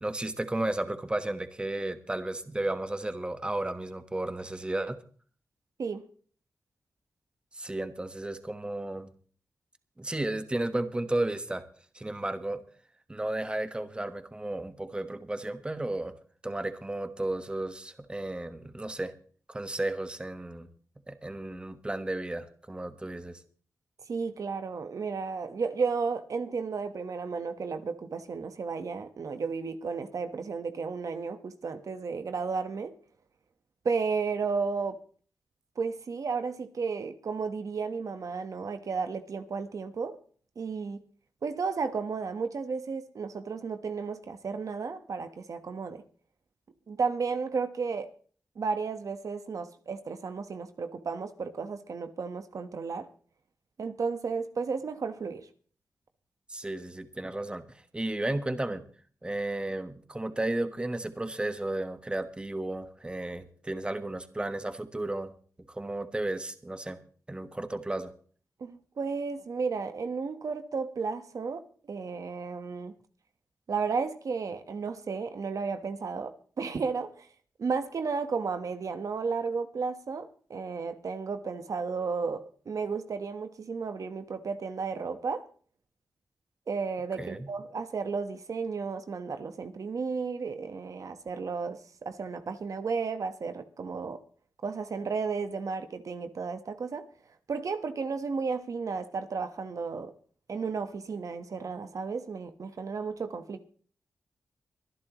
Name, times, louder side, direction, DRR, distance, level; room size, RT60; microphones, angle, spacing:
voice 1, 0.0-5.0 7.5-9.1 10.0-11.6 11.9-12.6 13.1-16.1 16.4-19.1 19.5-20.7 21.1-23.4 56.5-57.7 57.9-58.8 59.2-65.3 65.7-67.0 67.3-68.1 87.2-87.5, right 1 dB, 15° right, 1.3 m, -33 dB
voice 2, 24.1-32.9 33.8-35.0 35.8-40.2 40.6-41.0 41.4-46.0 46.9-48.1 48.6-53.1 53.8-55.5 68.6-71.6 71.9-72.9 73.7-77.3 77.6-85.4 86.7-94.2 94.6-97.0 97.5-100.1 100.5-103.7, right 5 dB, 65° right, 1.2 m, -33 dB
24.0 x 11.0 x 3.1 m
wide cardioid pair, 95°, 6 cm